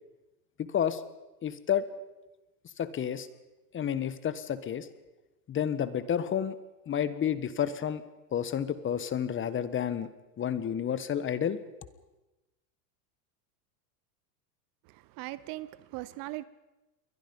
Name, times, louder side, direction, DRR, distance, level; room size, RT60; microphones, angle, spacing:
voice 1, 0.6-1.0 1.4-1.8 2.8-3.3 3.7-4.9 5.5-6.5 6.9-8.0 8.3-10.1 10.4-11.6, left 9 dB, 25° left, 14 dB, 1.3 m, -30 dB
voice 2, 14.8-16.5, right 18 dB, 45° right, 18 dB, 0.9 m, -40 dB
28.5 x 22.0 x 5.4 m, 1.1 s
supercardioid pair, 115°, 48 cm